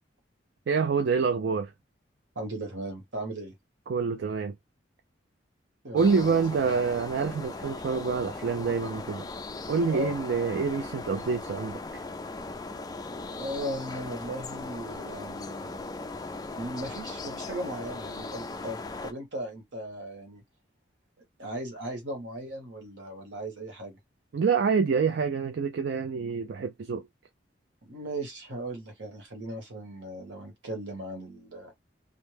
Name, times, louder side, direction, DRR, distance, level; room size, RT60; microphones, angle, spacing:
voice 1, 0.7-1.7 3.9-4.6 5.9-9.3 9.7-12.0 24.3-27.1, right 5 dB, 70° right, 0.4 m, -27 dB
voice 2, 2.3-3.5 5.8-6.4 9.9-10.2 13.4-15.8 16.5-20.4 21.4-24.0 27.8-31.7, right 1 dB, 85° right, 1.2 m, -37 dB
sound 1, 6.0-19.1, left 3 dB, 20° left, 0.3 m, -38 dB
2.5 x 2.1 x 3.2 m
head